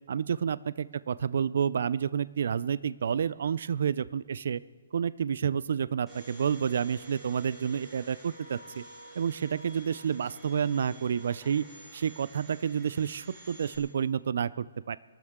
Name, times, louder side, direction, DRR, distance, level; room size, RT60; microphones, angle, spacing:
voice 1, 0.1-4.6 4.9-8.8 9.2-11.7 11.9-15.0, right 7 dB, 55° right, 19 dB, 0.4 m, -29 dB
Domestic sounds home sounds, 6.1-13.8, right 2 dB, 10° right, 3.1 m, -50 dB
23.5 x 13.0 x 3.7 m, 1.5 s
hypercardioid pair, 170°, 0 cm